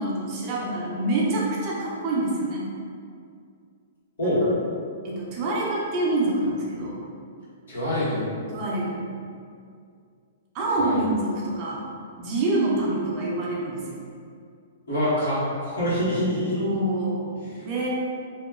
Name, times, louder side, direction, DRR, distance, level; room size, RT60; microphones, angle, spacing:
voice 1, 0.0-2.7 4.2-4.4 5.0-7.0 8.5-9.0 10.5-11.8 12.2-14.0 16.6-17.2 17.6-17.9, right 2 dB, 40° right, -4 dB, 0.6 m, -26 dB
voice 2, 7.7-8.2 10.8-11.0 14.9-16.6 17.3-17.6, equal, 80° left, -10 dB, 1.3 m, -25 dB
2.9 x 2.1 x 2.3 m, 2.3 s
hypercardioid pair, 135°, 0 cm